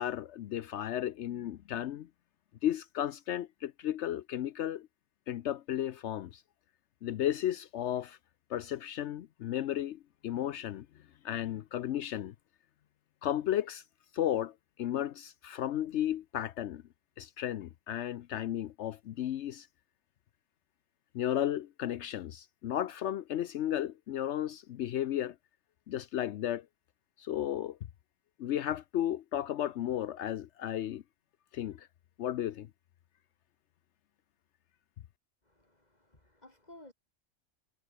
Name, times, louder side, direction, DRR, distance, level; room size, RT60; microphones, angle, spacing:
voice 1, 0.0-2.1 2.6-4.9 5.3-6.4 7.0-8.2 8.5-10.9 11.2-12.3 13.2-13.8 14.1-16.8 17.2-19.7 21.1-25.4 25.9-26.7 27.2-27.8 28.4-31.0 31.5-31.9 32.2-32.7, left 11 dB, 75° left, 0.9 m, -34 dB
voice 2, 35.4-36.9, left 1 dB, 35° left, 3.5 m, -56 dB
omnidirectional pair, 1.2 m